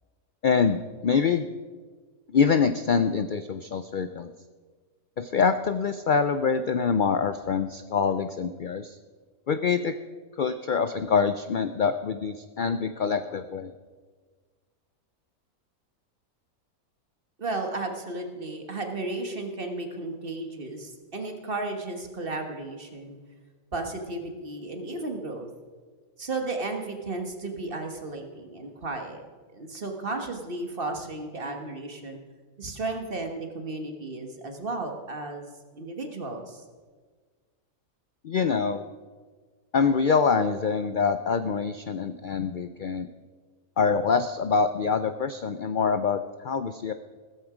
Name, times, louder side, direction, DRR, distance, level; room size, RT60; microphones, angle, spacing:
voice 1, 0.4-1.5 2.3-4.3 5.2-9.0 9.5-10.0 10.4-13.7 38.2-38.8 39.7-43.1 43.8-46.9, left 5 dB, 70° left, 10 dB, 0.4 m, -25 dB
voice 2, 17.4-23.2 23.7-25.5 26.2-29.3 29.5-32.2 32.6-36.6, right 2 dB, 40° right, 4 dB, 1.7 m, -34 dB
16.0 x 14.0 x 5.0 m, 1.5 s
omnidirectional pair, 1.6 m